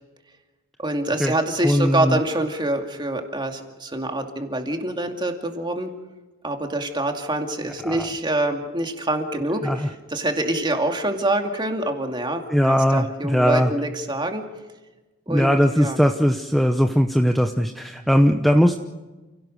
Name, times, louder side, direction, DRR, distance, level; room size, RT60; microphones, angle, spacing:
voice 1, 0.8-5.9 6.4-9.7 10.1-12.4 12.7-14.4 15.3-15.5 15.7-16.0, right 1 dB, 20° right, 4 dB, 2.4 m, -25 dB
voice 2, 1.6-2.2 7.8-8.1 9.6-9.9 12.5-13.7 15.3-18.8, equal, ahead, 4 dB, 0.8 m, -19 dB
29.5 x 17.5 x 6.4 m, 1.2 s
head